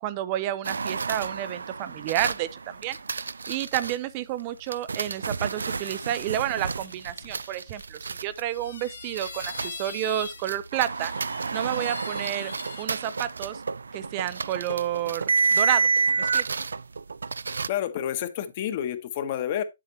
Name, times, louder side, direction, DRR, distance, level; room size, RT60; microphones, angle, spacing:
voice 1, 0.0-3.0 3.5-11.1 11.5-12.5 12.8-13.6 13.9-15.2 15.5-15.9 16.2-16.5, right 12 dB, 35° right, 0.6 m, -30 dB
sound 1, 0.6-4.0 4.7-9.9 10.2-17.7, right 4 dB, 85° right, 0.4 m, -29 dB
sound 2, 5.6-7.9 8.5-10.5 10.8-12.8, left 4 dB, 90° left, 1.9 m, -42 dB
voice 2, 17.5-19.6, left 10 dB, 45° left, 1.3 m, -29 dB
7.9 x 7.6 x 3.0 m
hypercardioid pair, 145°, 0 cm